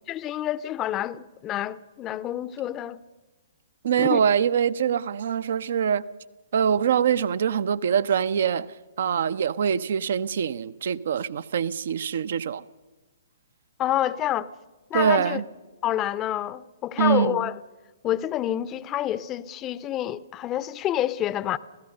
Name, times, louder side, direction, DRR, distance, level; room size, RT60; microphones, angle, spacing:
voice 1, 0.1-3.0 4.0-4.2 13.8-14.5 14.9-15.4 15.8-17.6 18.0-21.6, left 12 dB, 25° left, 0.7 m, -28 dB
voice 2, 3.8-6.0 6.5-8.7 9.0-12.6 14.9-15.4 17.0-17.5, right 8 dB, 55° right, 0.7 m, -24 dB
27.0 x 16.5 x 6.6 m
figure-of-eight pair, 120°, 0 cm